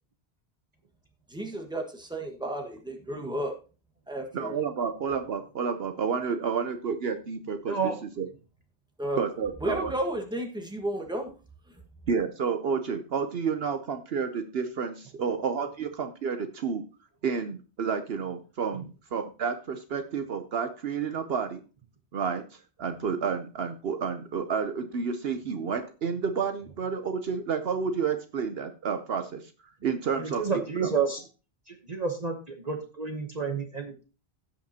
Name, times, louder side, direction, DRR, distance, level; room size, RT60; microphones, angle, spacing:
voice 1, 1.3-3.5 4.1-4.6 9.0-9.2 9.6-11.3, right 1 dB, 5° right, 2 dB, 1.5 m, -32 dB
voice 2, 4.3-8.3 9.1-9.9 12.1-16.8 17.2-21.6 22.1-29.5 29.8-30.9, right 6 dB, 65° right, 8 dB, 1.0 m, -30 dB
voice 3, 7.7-8.0 30.2-31.2 31.7-34.0, right 5 dB, 40° right, 4 dB, 1.1 m, -30 dB
16.0 x 5.7 x 2.8 m, 0.33 s
omnidirectional pair, 1.1 m